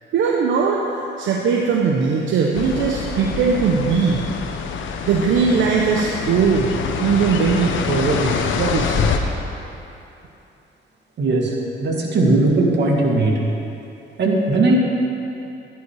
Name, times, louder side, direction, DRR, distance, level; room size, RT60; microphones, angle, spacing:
voice 1, 0.1-4.3 5.0-9.1, right 5 dB, 80° right, -1 dB, 1.0 m, -20 dB
sound 1, 2.5-9.2, left 6 dB, 75° left, 1.0 m, -25 dB
voice 2, 11.2-11.6 11.8-13.4 14.2-14.8, right 2 dB, 60° right, -2 dB, 2.4 m, -18 dB
13.0 x 10.5 x 4.8 m, 2.8 s
cardioid pair, 90°, 20 cm